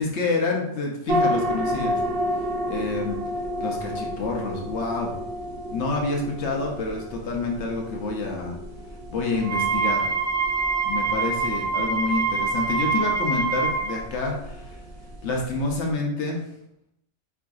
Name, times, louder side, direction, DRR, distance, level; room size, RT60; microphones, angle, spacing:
voice 1, 0.0-2.0 2.6-3.2 3.6-5.1 5.7-8.6 9.1-10.1 10.8-14.8 15.2-16.4, left 3 dB, 70° left, 0 dB, 0.9 m, -28 dB
sound 1, 1.1-15.9, equal, 65° right, 0.7 m, -32 dB
Wind instrument woodwind instrument, 9.4-13.9, right 4 dB, 85° right, 1.1 m, -25 dB
4.5 x 2.5 x 2.3 m, 0.80 s
omnidirectional pair, 1.3 m